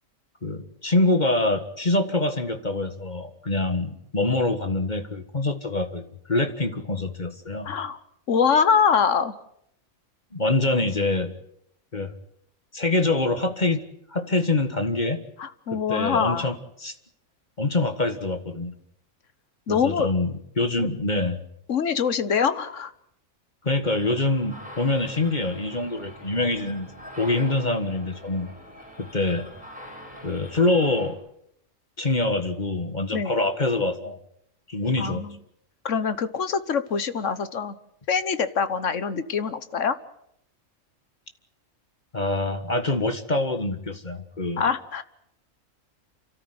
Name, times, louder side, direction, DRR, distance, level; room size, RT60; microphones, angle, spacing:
voice 1, 0.4-7.7 10.3-11.3 11.9-12.1 12.7-15.2 15.7-16.6 16.8-16.9 17.6-18.7 19.7-21.4 23.6-26.9 27.2-28.5 29.0-29.5 30.2-31.2 32.0-34.2 34.7-35.2 42.1-44.6, left 2 dB, 35° left, 7 dB, 1.7 m, -25 dB
voice 2, 7.6-8.0 8.3-9.4 15.4-16.6 19.7-20.1 20.8-20.9 21.7-22.9 33.1-33.3 35.0-35.4 35.8-37.8 38.1-40.0 44.6-45.0, left 6 dB, 65° left, 12 dB, 1.6 m, -24 dB
sound 1, 23.8-31.1, equal, 5° right, 8.0 m, -43 dB
29.5 x 13.5 x 9.5 m, 0.76 s
omnidirectional pair, 1.4 m